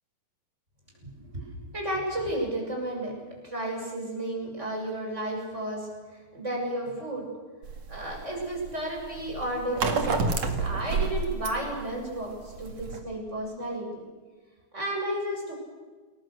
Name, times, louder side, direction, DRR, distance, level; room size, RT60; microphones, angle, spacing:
voice 1, 1.7-3.1 3.4-5.9 6.3-7.3 7.9-13.9 14.7-15.5, right 1 dB, 15° right, -1 dB, 7.1 m, -32 dB
sound 1, 7.6-13.0, right 4 dB, 45° right, 3.0 m, -30 dB
28.5 x 23.5 x 6.6 m, 1.4 s
omnidirectional pair, 4.4 m